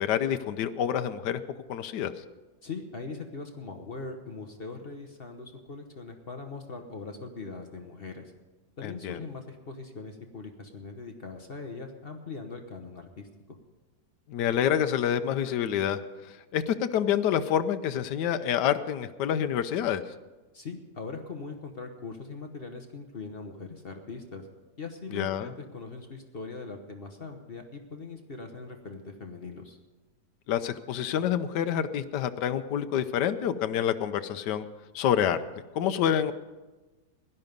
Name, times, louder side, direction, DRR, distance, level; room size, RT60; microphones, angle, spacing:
voice 1, 0.0-1.4 1.7-2.1 8.8-9.2 14.3-16.0 16.3-20.0 25.1-25.5 30.5-34.6 34.9-35.4 35.7-36.3, left 9 dB, 80° left, 10 dB, 1.3 m, -27 dB
voice 2, 2.6-8.3 8.8-13.6 20.5-24.5 24.8-29.8, left 4 dB, 40° left, 5 dB, 1.1 m, -41 dB
16.5 x 11.0 x 5.3 m, 1.2 s
omnidirectional pair, 1.8 m